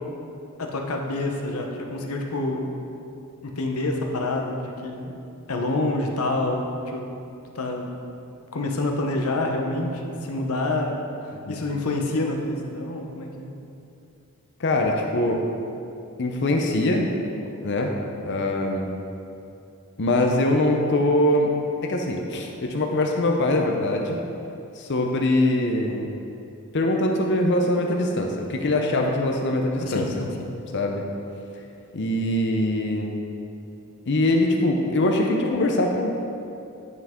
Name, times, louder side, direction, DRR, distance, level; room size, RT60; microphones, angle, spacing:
voice 1, 0.6-2.7 3.4-5.1 5.5-7.1 7.5-7.9 8.5-13.5 29.8-30.3, left 2 dB, 80° left, 2 dB, 0.9 m, -27 dB
voice 2, 14.6-15.4 16.2-17.1 17.6-17.9 18.2-18.9 20.0-21.5 21.8-24.2 24.8-26.1 26.7-30.1 30.7-31.1 31.9-33.1 34.1-36.1, left 1 dB, 55° left, 2 dB, 0.6 m, -22 dB
9.8 x 5.8 x 3.7 m, 2.7 s
head